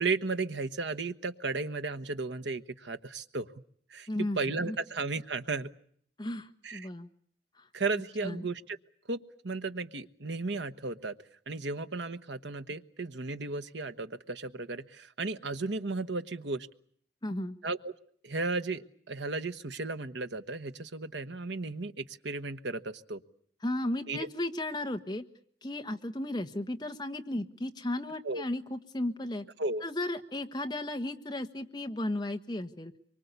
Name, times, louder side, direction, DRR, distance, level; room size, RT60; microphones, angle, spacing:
voice 1, 0.0-3.5 3.9-4.1 4.4-5.7 6.6-6.9 7.7-8.8 9.1-11.2 11.5-16.7 17.6-17.9 18.2-23.2 24.1-24.3 28.2-28.4 29.6-29.8, right 3 dB, 85° right, 11 dB, 1.2 m, -34 dB
voice 2, 4.1-4.4 4.7-4.8 6.2-7.1 7.6-7.7 8.2-8.4 17.2-17.6 23.6-25.2 25.6-29.4 29.8-32.9, left 1 dB, 25° left, 6 dB, 1.3 m, -34 dB
24.5 x 24.0 x 8.2 m, 0.62 s
head